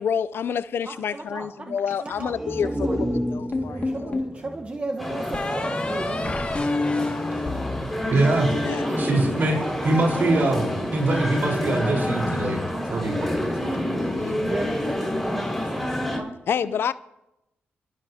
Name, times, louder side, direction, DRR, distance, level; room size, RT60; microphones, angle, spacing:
voice 1, 0.0-4.2 8.6-8.9 14.0-14.4 16.5-16.9, left 7 dB, 70° left, 0.4 m, -28 dB
voice 2, 0.8-2.3 2.6-2.9 3.7-6.5 7.0-7.5 8.3-9.0 9.3-10.6 11.8-12.1 12.7-13.9 14.4-15.0 15.3-15.8 16.1-16.8, right 2 dB, 30° right, 1.2 m, -36 dB
sound 1, 2.1-5.9 6.2-6.3, equal, 10° right, 2.6 m, -31 dB
sound 2, 3.5-4.4 5.3-8.7, left 3 dB, 35° left, 2.0 m, -29 dB
sound 3, 5.0-16.2, left 1 dB, 5° left, 5.2 m, -28 dB
voice 3, 8.1-8.5 9.0-10.7 10.9-12.6 12.9-13.2, right 2 dB, 55° right, 4.2 m, -23 dB
26.0 x 12.5 x 2.8 m
cardioid pair, 70°, 4 cm